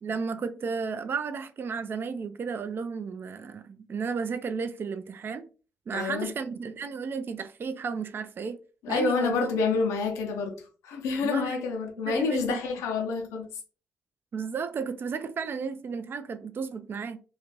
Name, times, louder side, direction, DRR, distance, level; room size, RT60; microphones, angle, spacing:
voice 1, 0.0-5.5 5.9-8.6 8.9-9.6 11.2-11.6 12.1-12.6 14.3-17.2, right 5 dB, 45° right, 0.3 m, -33 dB
voice 2, 5.9-6.3 8.8-13.5, left 5 dB, 80° left, 0.7 m, -28 dB
2.5 x 2.5 x 3.0 m
hypercardioid pair, 45°, 5 cm